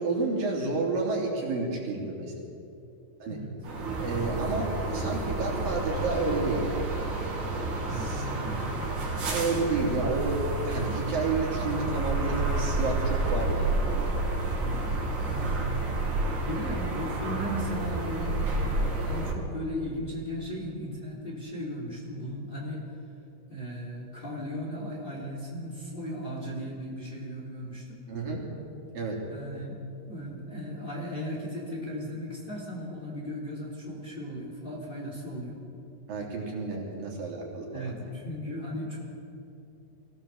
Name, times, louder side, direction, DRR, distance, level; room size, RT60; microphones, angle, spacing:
voice 1, 0.0-2.3 3.2-3.4 4.0-6.9 7.9-8.2 9.3-14.1 28.1-28.4 28.9-29.2 36.1-38.0, right 3 dB, 80° right, -2 dB, 5.0 m, -30 dB
voice 2, 3.2-3.6 7.8-8.6 14.6-16.0 16.4-22.8 23.5-28.0 29.3-29.8 30.1-35.6 37.7-39.0, equal, 15° left, -2 dB, 3.0 m, -36 dB
sound 1, 3.6-19.3, right 2 dB, 60° right, 4.1 m, -30 dB
23.0 x 16.0 x 7.3 m, 2.8 s
omnidirectional pair, 3.9 m